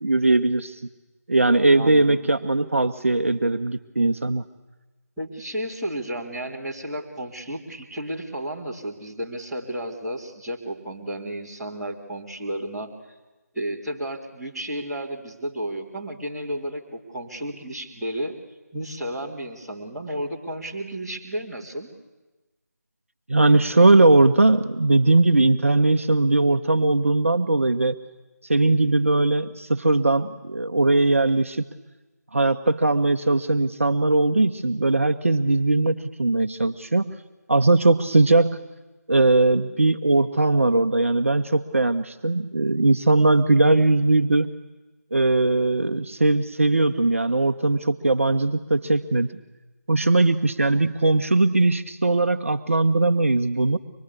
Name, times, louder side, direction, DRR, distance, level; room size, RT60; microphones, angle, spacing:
voice 1, 0.0-0.8 1.3-4.4 23.3-28.0 28.5-31.7 32.3-37.1 37.5-38.6 39.1-44.5 45.1-49.3 49.9-53.8, right 2 dB, 50° right, 8 dB, 1.0 m, -20 dB
voice 2, 1.7-2.3 5.2-12.9 13.5-18.3 18.7-21.9, right 1 dB, ahead, -13 dB, 2.3 m, -32 dB
24.5 x 20.5 x 8.4 m, 1.2 s
figure-of-eight pair, 165°, 9 cm